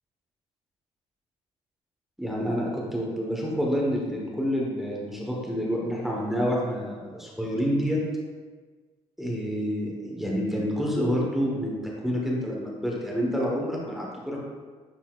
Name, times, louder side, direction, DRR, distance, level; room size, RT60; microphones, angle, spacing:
voice 1, 2.2-8.0 9.2-14.4, equal, 5° right, -3 dB, 1.0 m, -28 dB
10.0 x 4.2 x 2.3 m, 1.4 s
cardioid pair, 150°, 11 cm